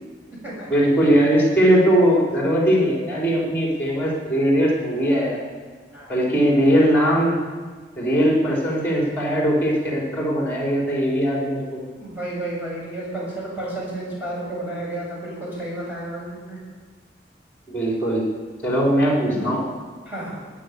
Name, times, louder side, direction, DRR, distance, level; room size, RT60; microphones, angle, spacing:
voice 1, 0.7-5.4 6.1-7.4 8.0-11.8 17.7-18.2 18.6-19.6, equal, 10° left, -3 dB, 4.6 m, -20 dB
voice 2, 5.9-6.5 12.0-16.6 20.0-20.3, right 1 dB, 10° right, -6 dB, 6.6 m, -32 dB
21.0 x 9.4 x 7.0 m, 1.5 s
head